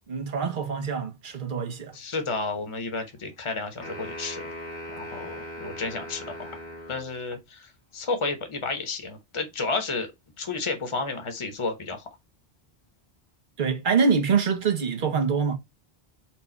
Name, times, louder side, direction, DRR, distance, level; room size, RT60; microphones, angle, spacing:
voice 1, 0.1-1.9 13.6-15.6, right 5 dB, 50° right, 1.0 m, -25 dB
voice 2, 1.9-4.5 4.9-6.6 6.9-10.1 10.4-12.1, left 3 dB, 30° left, 0.9 m, -31 dB
sound 1, 3.8-7.1, equal, 75° left, 1.9 m, -39 dB
4.5 x 2.3 x 4.2 m
omnidirectional pair, 1.1 m